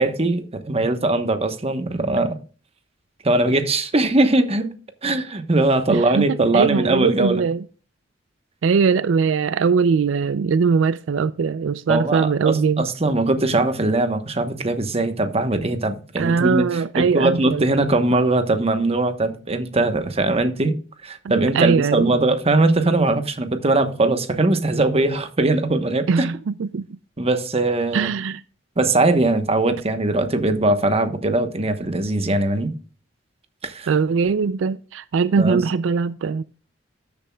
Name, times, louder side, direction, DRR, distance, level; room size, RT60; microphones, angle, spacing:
voice 1, 0.0-2.4 3.2-4.7 5.0-7.4 11.9-20.7 21.0-26.3 27.2-28.1 28.8-32.7 33.6-34.0 35.4-35.6, right 2 dB, 30° right, 1.0 m, -20 dB
voice 2, 5.9-7.6 8.6-12.9 16.2-17.7 21.2-22.1 26.1-26.9 27.9-28.4 33.9-36.4, right 5 dB, 90° right, 0.4 m, -21 dB
13.0 x 7.0 x 2.3 m
head